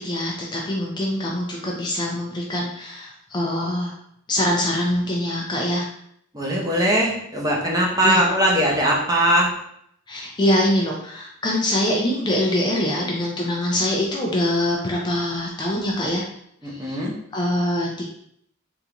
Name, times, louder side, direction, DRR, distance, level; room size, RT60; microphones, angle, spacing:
voice 1, 0.0-3.9 4.3-5.9 8.0-8.2 10.1-16.2 16.6-17.0 17.3-18.1, left 1 dB, 20° left, -2 dB, 0.4 m, -24 dB
voice 2, 6.3-9.6 16.6-17.2, right 1 dB, 20° right, -3 dB, 0.7 m, -20 dB
3.6 x 2.5 x 2.9 m, 0.71 s
head